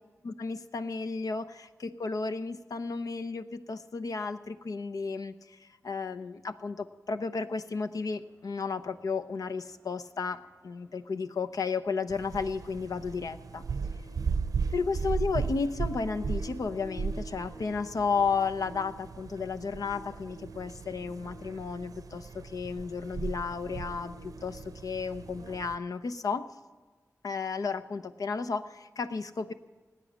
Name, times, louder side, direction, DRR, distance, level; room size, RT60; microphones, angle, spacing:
voice 1, 0.2-5.3 5.8-13.6 14.7-26.4 27.2-29.5, left 4 dB, 85° left, 11 dB, 0.8 m, -33 dB
sound 1, 7.9-25.5, equal, 50° left, 3.9 m, -52 dB
sound 2, 12.1-25.8, right 5 dB, 80° right, 0.6 m, -37 dB
18.0 x 9.2 x 7.5 m, 1.4 s
wide cardioid pair, 80°, 6 cm